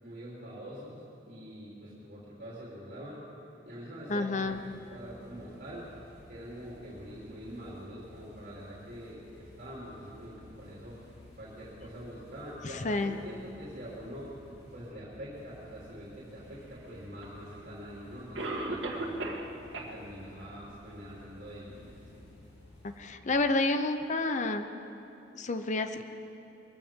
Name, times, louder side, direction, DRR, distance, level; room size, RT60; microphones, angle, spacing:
voice 1, 0.0-3.2 3.6-4.6 4.9-5.9 6.3-11.0 11.4-14.3 14.7-19.4 19.7-22.2, equal, 55° right, -7 dB, 3.5 m, -45 dB
voice 2, 4.1-4.6 12.8-13.2 23.0-24.7 25.3-26.0, left 2 dB, 40° left, 8 dB, 0.7 m, -29 dB
sound 1, 4.4-23.0, left 1 dB, 60° left, 4.5 m, -55 dB
Cough, 17.2-17.3 18.3-19.5 19.7-19.9 20.4-20.5 21.1-21.2, right 2 dB, 85° right, 1.9 m, -34 dB
22.0 x 15.5 x 3.7 m, 2.9 s
head